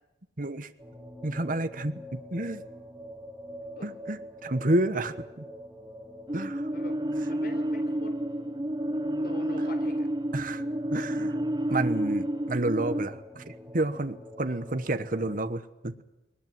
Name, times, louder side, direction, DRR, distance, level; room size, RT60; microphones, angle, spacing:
voice 1, 0.4-0.7 1.2-2.6 3.8-5.4 6.3-6.7 10.3-10.6 10.9-11.4 11.7-16.0, right 2 dB, 50° right, 10 dB, 1.2 m, -30 dB
sound 1, 0.8-15.4, left 1 dB, 10° right, 2.0 m, -45 dB
sound 2, 6.3-13.1, right 1 dB, 25° right, 1.0 m, -30 dB
voice 2, 7.3-8.2 9.2-10.1 14.4-14.6, left 1 dB, 55° left, 7 dB, 4.2 m, -44 dB
21.0 x 19.5 x 9.4 m, 0.94 s
head